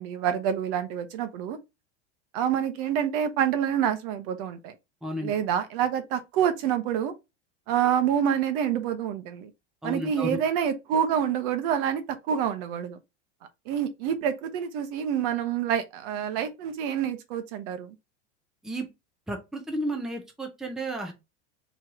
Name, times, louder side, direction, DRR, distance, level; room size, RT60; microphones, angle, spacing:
voice 1, 0.0-1.6 2.3-4.7 5.2-7.1 7.7-9.5 9.8-12.0 12.3-13.0 13.7-17.9, right 9 dB, 50° right, 0.9 m, -27 dB
voice 2, 5.0-5.3 9.8-10.4 18.6-18.9 19.3-21.1, right 1 dB, ahead, 0.7 m, -32 dB
4.6 x 3.1 x 3.6 m
supercardioid pair, 150°, 34 cm